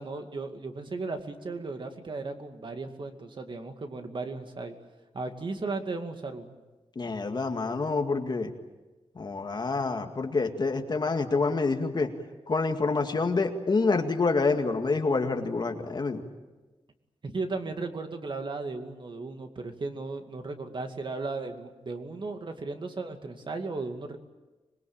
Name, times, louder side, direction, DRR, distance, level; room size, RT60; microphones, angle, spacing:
voice 1, 0.0-4.7 5.1-6.5 17.2-24.2, right 3 dB, 50° right, 5 dB, 2.3 m, -36 dB
voice 2, 7.0-8.5 9.2-12.1 12.5-16.3, left 3 dB, 40° left, 5 dB, 2.1 m, -27 dB
26.5 x 21.5 x 8.9 m, 1.1 s
wide cardioid pair, 170°, 11 cm